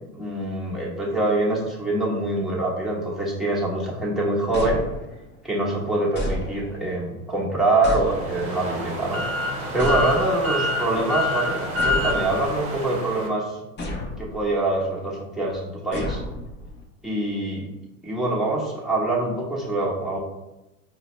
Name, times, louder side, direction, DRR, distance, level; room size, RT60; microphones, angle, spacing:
voice 1, 0.1-4.8 5.4-9.2 9.7-13.6 14.2-16.2 17.0-17.6 18.0-20.2, right 2 dB, ahead, -6 dB, 1.0 m, -24 dB
sound 1, 4.5-5.4 6.1-7.0 7.8-8.7 9.8-10.6 11.8-12.8 13.8-14.5 15.9-16.8, left 1 dB, 25° left, 0.8 m, -32 dB
sound 2, 8.0-13.3, left 1 dB, 30° right, 1.1 m, -27 dB
4.6 x 2.1 x 3.1 m, 0.96 s
hypercardioid pair, 105°, 44 cm